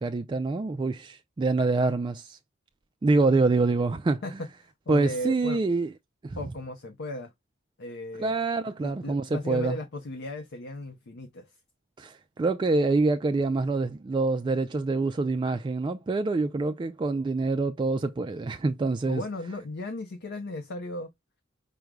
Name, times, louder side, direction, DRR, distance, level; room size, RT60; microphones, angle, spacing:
voice 1, 0.0-2.4 3.0-4.2 4.9-5.9 6.2-6.4 8.2-9.8 12.0-19.2, right 3 dB, 25° right, 0.3 m, -26 dB
voice 2, 4.9-5.6 6.4-7.3 7.8-8.3 8.7-11.6 19.1-21.1, left 1 dB, 60° left, 0.6 m, -36 dB
5.1 x 2.1 x 4.6 m
head